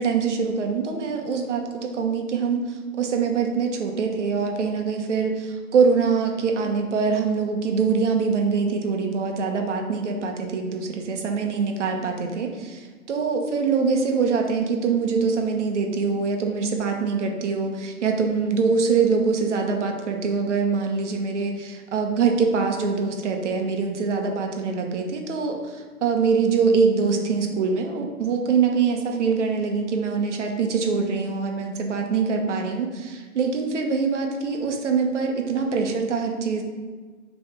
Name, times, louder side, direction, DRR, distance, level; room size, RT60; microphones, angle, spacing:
voice 1, 0.0-36.6, right 5 dB, 55° right, 3 dB, 1.1 m, -24 dB
6.6 x 3.4 x 4.5 m, 1.4 s
hypercardioid pair, 160°, 43 cm